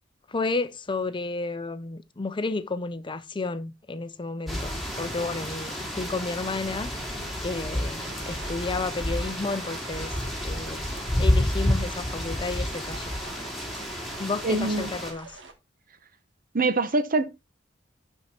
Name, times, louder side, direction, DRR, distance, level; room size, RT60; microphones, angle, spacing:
voice 1, 0.3-6.9 7.4-10.2 10.4-10.9 11.2-13.1 14.2-15.3, left 3 dB, 25° left, 0.6 m, -32 dB
sound 1, 4.5-15.1, left 1 dB, ahead, 2.8 m, -30 dB
sound 2, 8.0-15.5, right 3 dB, 80° right, 1.7 m, -45 dB
voice 2, 14.4-14.9 16.5-17.3, right 3 dB, 50° right, 0.9 m, -24 dB
11.5 x 4.6 x 4.3 m
head